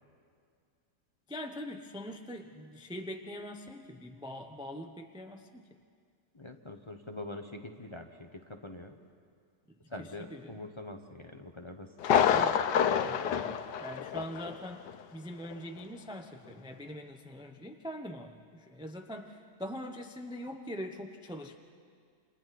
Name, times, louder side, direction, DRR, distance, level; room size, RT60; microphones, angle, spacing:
voice 1, 1.3-5.7 9.7-10.7 12.3-21.6, equal, 5° right, 4 dB, 0.4 m, -43 dB
voice 2, 6.3-9.1 9.9-11.9, left 2 dB, 25° left, 4 dB, 0.7 m, -44 dB
Thunder, 12.0-14.6 14.9-15.0 15.5-15.6, left 8 dB, 85° left, 1.4 m, -27 dB
29.0 x 26.5 x 4.2 m, 2.1 s
omnidirectional pair, 1.8 m